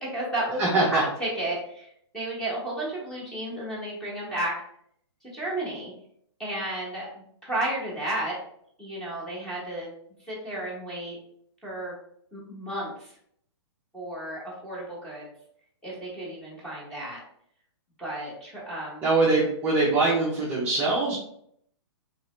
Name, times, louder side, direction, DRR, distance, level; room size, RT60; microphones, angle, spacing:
voice 1, 0.0-4.5 5.2-5.9 6.4-8.4 8.8-9.9 10.2-11.2 11.6-12.0 12.3-13.2 13.9-15.3 15.8-17.2 18.0-19.5, right 1 dB, 5° left, -6 dB, 0.9 m, -33 dB
voice 2, 0.6-1.0 19.0-21.1, right 3 dB, 10° right, -7 dB, 0.5 m, -23 dB
2.9 x 2.6 x 3.1 m, 0.69 s
hypercardioid pair, 160°, 15 cm